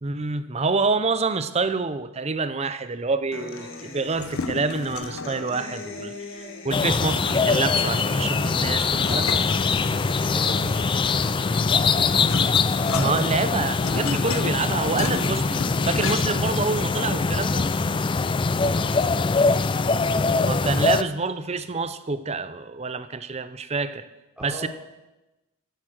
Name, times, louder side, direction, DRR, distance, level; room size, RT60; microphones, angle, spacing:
voice 1, 0.0-9.4 12.9-17.6 20.4-24.1 24.4-24.7, right 4 dB, 30° right, 12 dB, 0.6 m, -27 dB
Human voice / Acoustic guitar, 3.3-11.3, left 3 dB, 60° left, 1.9 m, -40 dB
sound 1, 4.1-5.4 6.9-7.9 8.9-10.3 11.4-16.5, left 5 dB, 75° left, 0.7 m, -34 dB
sound 2, 6.7-21.0, left 4 dB, 25° left, 0.3 m, -23 dB
voice 2, 9.9-12.2 18.7-19.7 24.4-24.7, equal, 5° right, -4 dB, 4.0 m, -40 dB
15.0 x 8.1 x 6.4 m, 1.0 s
head